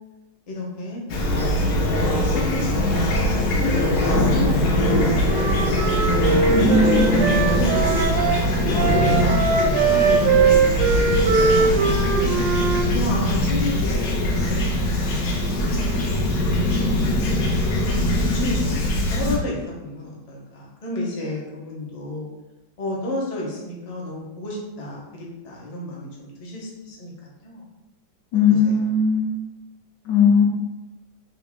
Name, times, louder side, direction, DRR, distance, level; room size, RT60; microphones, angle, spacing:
voice 1, 0.5-1.0 1.8-3.8 4.1-6.0 6.6-8.1 8.3-12.4 12.9-17.2 17.9-22.3 22.8-27.6 28.5-28.8, left 2 dB, 40° left, -4 dB, 0.5 m, -32 dB
Fowl / Chirp tweet, 1.1-19.4, left 1 dB, 65° left, 1.0 m, -21 dB
Wind instrument woodwind instrument, 4.8-8.4 8.8-12.9, right 5 dB, 85° right, 1.2 m, -21 dB
voice 2, 6.5-7.2 28.3-29.4 30.1-30.5, left 4 dB, 85° left, 1 dB, 1.4 m, -18 dB
3.4 x 2.6 x 3.5 m, 1.1 s
omnidirectional pair, 1.9 m